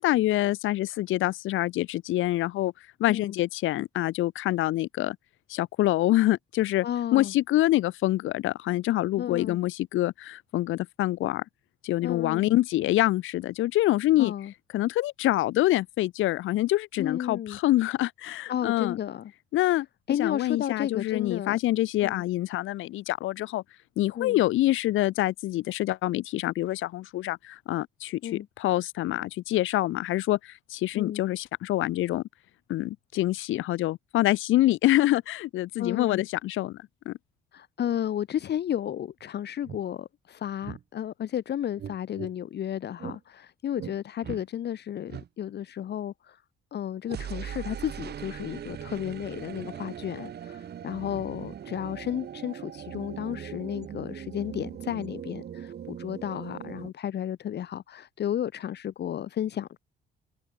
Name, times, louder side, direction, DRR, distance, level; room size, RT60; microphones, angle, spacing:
voice 1, 0.0-2.7 3.0-5.2 5.5-6.9 7.1-11.4 11.8-14.3 14.7-19.0 19.5-19.9 20.2-23.6 24.0-32.2 32.7-36.8 37.1-37.2, left 15 dB, 90° left, 2.3 m, -26 dB
voice 2, 6.8-7.3 9.2-9.6 12.0-12.6 14.2-14.5 17.0-17.6 18.5-19.3 20.1-21.6 22.0-22.2 24.2-24.4 28.2-28.5 30.9-31.2 35.8-36.2 37.5-46.4 46.7-59.8, left 10 dB, 55° left, 1.0 m, -33 dB
sound 1, 39.2-39.3 39.6-39.8 40.6-40.8 41.8-42.3 43.0-43.2 43.8-44.0 44.2-44.4 45.1-45.3 47.1-56.9, right 9 dB, 55° right, 1.5 m, -40 dB
cardioid pair, 90°, 20 cm